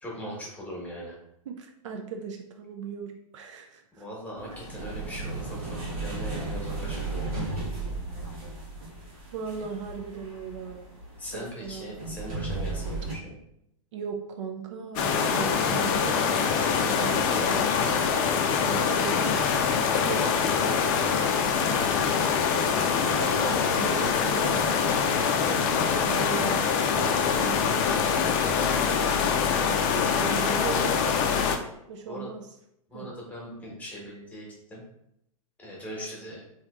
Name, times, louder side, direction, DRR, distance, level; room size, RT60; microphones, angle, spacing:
voice 1, 0.0-1.2 3.9-7.4 11.2-13.3 29.9-30.4 32.1-32.3 32.9-34.8 35.6-36.4, equal, 10° left, -3 dB, 1.1 m, -40 dB
voice 2, 1.5-4.1 4.4-4.6 9.3-10.9 11.3-11.9 13.9-16.6 16.8-18.0 18.6-19.4 19.9-20.3 22.5-25.7 26.0-26.6 26.9-27.8 28.2-28.3 30.2-31.6 31.9-32.4 32.9-33.1, right 6 dB, 60° right, 3 dB, 0.4 m, -38 dB
sound 1, 4.4-13.1, right 3 dB, 90° right, 1.1 m, -35 dB
sound 2, 15.0-31.6, left 6 dB, 40° left, 0.4 m, -24 dB
3.2 x 2.8 x 2.4 m, 0.79 s
hypercardioid pair, 110°, 18 cm